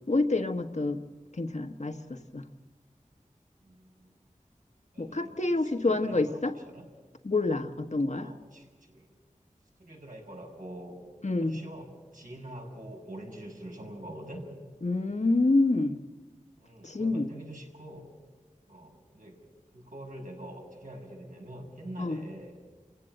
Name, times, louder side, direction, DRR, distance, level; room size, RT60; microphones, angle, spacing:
voice 1, 0.1-1.0 1.3-2.4 5.0-6.5 7.2-8.3 11.2-11.6 14.8-16.0 16.8-17.3 22.0-22.2, left 2 dB, 60° left, 5 dB, 1.3 m, -27 dB
voice 2, 3.6-4.1 4.9-5.5 5.9-6.4 6.7-6.8 8.2-9.0 9.8-11.0 11.4-11.9 12.1-14.5 16.6-18.1 18.7-19.4 19.7-22.5, right 1 dB, 75° right, -1 dB, 6.7 m, -45 dB
29.0 x 16.0 x 7.7 m, 1.4 s
wide cardioid pair, 45°, 14 cm